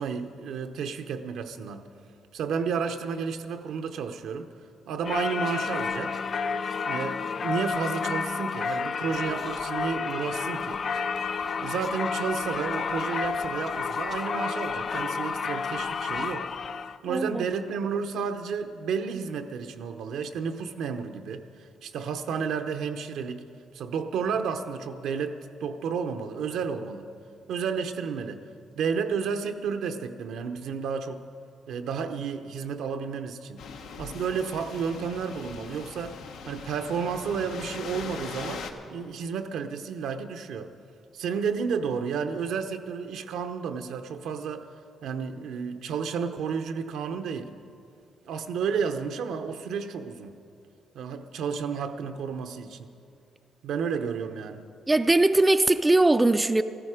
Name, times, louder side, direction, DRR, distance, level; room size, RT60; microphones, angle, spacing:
voice 1, 0.0-1.9 2.3-4.5 4.9-6.2 6.8-10.8 11.6-16.5 17.0-21.4 21.8-23.4 23.7-27.1 27.5-28.4 28.7-31.3 31.7-33.6 34.0-36.2 36.5-40.7 41.1-44.7 45.0-47.5 48.3-50.4 50.9-52.9 53.6-54.6, right 6 dB, 80° right, 7 dB, 0.8 m, -31 dB
Singing / Church bell, 5.0-17.0, left 5 dB, 50° left, 0.4 m, -30 dB
voice 2, 17.1-17.4 54.9-56.6, right 2 dB, 15° right, 9 dB, 0.4 m, -20 dB
sound 1, 33.6-38.7, left 5 dB, 80° left, 1.0 m, -40 dB
14.0 x 14.0 x 5.0 m, 2.4 s
cardioid pair, 90°, 0 cm